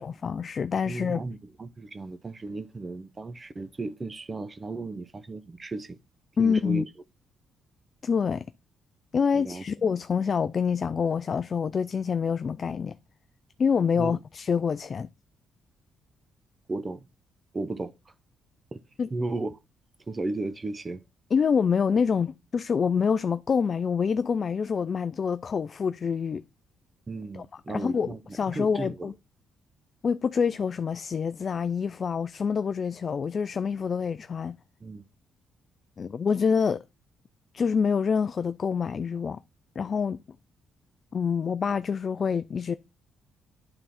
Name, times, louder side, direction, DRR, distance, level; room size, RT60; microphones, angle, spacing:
voice 1, 0.0-1.2 6.4-6.9 8.0-8.5 9.1-13.0 13.6-15.1 19.0-19.1 21.3-26.4 27.3-29.1 30.0-34.6 36.0-36.8 37.5-39.4 39.8-40.2 41.1-42.7, left 6 dB, 45° left, 0.3 m, -26 dB
voice 2, 0.9-6.0 6.4-6.8 9.3-9.6 14.0-14.2 16.7-17.1 17.5-18.1 18.7-18.8 19.1-19.6 20.1-21.0 27.1-28.2 28.5-29.1 34.8-35.0, right 3 dB, 25° right, 0.6 m, -35 dB
9.1 x 3.8 x 4.2 m
cardioid pair, 90°, 0 cm